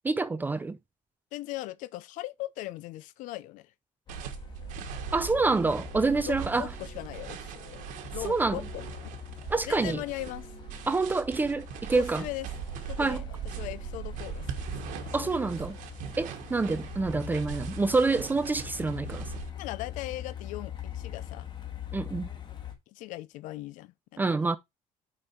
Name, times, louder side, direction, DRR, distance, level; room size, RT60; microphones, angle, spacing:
voice 1, 0.0-0.8 5.1-6.7 8.2-8.6 9.5-10.0 10.9-12.2 13.0-13.2 15.1-15.8 16.2-19.3 21.9-22.3 24.2-24.6, right 3 dB, 15° right, 0.4 m, -27 dB
voice 2, 1.3-3.7 6.2-7.8 8.1-9.1 9.7-10.5 11.9-12.5 12.9-15.6 19.5-21.5 22.9-24.5, left 17 dB, 80° left, 0.5 m, -39 dB
Truck, 4.1-22.7, left 10 dB, 35° left, 1.5 m, -43 dB
sound 1, 4.1-19.5, right 9 dB, 80° right, 1.4 m, -40 dB
6.3 x 5.3 x 4.2 m
cardioid pair, 150°, 13 cm